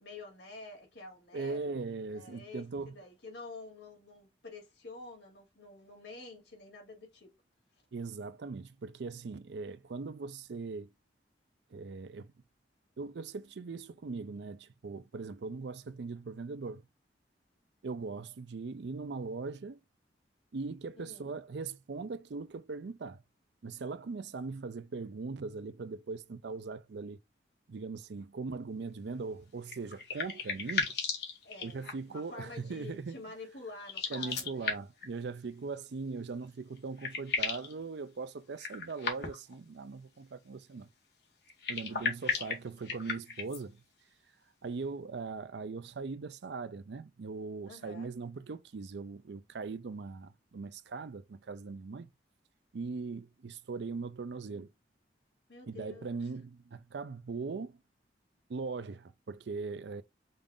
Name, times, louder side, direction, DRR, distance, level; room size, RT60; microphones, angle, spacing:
voice 1, 0.0-1.6 2.1-7.3 21.0-21.3 31.4-34.7 42.4-42.6 47.7-48.1 55.5-56.3, left 3 dB, 75° left, 2.7 m, -49 dB
voice 2, 1.3-3.0 7.9-10.9 11.7-12.3 13.0-16.8 17.8-19.8 20.5-23.2 23.6-27.2 27.7-31.0 31.6-33.2 34.1-40.9 41.7-43.8 44.6-52.1 52.7-54.7 55.7-57.8 58.5-60.0, right 4 dB, 70° right, 0.5 m, -40 dB
sound 1, 29.7-32.2 33.8-35.1 36.4-36.5 36.8-37.7 38.6-39.5 41.5-43.6, left 4 dB, 60° left, 1.5 m, -35 dB
5.3 x 2.5 x 3.7 m
head